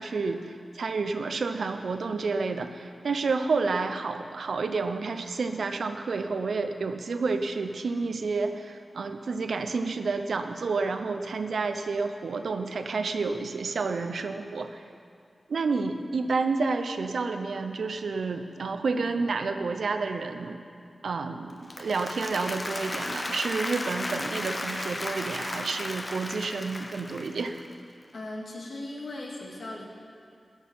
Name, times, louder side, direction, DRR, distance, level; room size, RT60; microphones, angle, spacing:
voice 1, 0.0-14.8 15.5-20.6 21.0-27.6, right 4 dB, 85° right, 7 dB, 0.8 m, -30 dB
Applause, 21.5-27.7, left 1 dB, 35° left, 1.1 m, -35 dB
voice 2, 28.1-29.9, left 2 dB, 80° left, -3 dB, 2.4 m, -38 dB
16.0 x 6.5 x 9.5 m, 2.4 s
cardioid pair, 45°, 0 cm